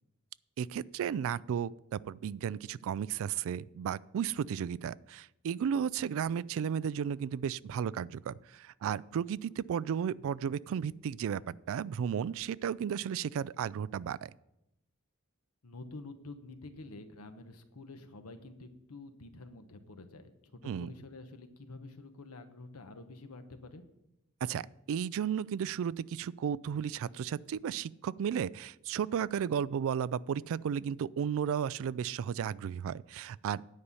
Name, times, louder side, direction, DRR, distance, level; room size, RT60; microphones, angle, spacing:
voice 1, 0.6-14.3 20.6-20.9 24.4-33.6, right 8 dB, 65° right, 21 dB, 0.3 m, -34 dB
voice 2, 15.6-23.8, left 2 dB, 80° left, 8 dB, 1.1 m, -48 dB
9.7 x 5.6 x 8.2 m, 0.85 s
head